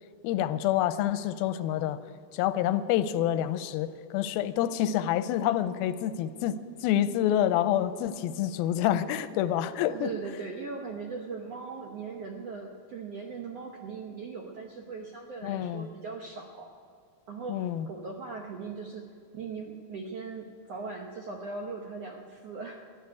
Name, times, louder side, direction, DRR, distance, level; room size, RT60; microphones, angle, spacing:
voice 1, 0.2-2.0 2.3-10.1 15.4-15.9 17.5-17.9, left 11 dB, 90° left, 13 dB, 2.4 m, -27 dB
voice 2, 9.8-16.7 17.3-22.9, right 4 dB, 85° right, 2 dB, 1.4 m, -39 dB
14.0 x 11.0 x 9.4 m, 2.3 s
omnidirectional pair, 4.3 m